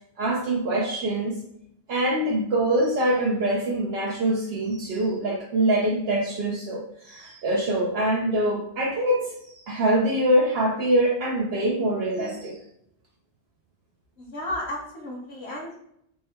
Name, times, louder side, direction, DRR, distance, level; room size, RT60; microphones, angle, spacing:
voice 1, 0.2-1.4 1.9-12.6, right 1 dB, 70° right, -1 dB, 0.8 m, -24 dB
voice 2, 14.2-15.7, left 1 dB, 70° left, -4 dB, 1.2 m, -33 dB
3.4 x 2.2 x 4.1 m, 0.75 s
omnidirectional pair, 1.1 m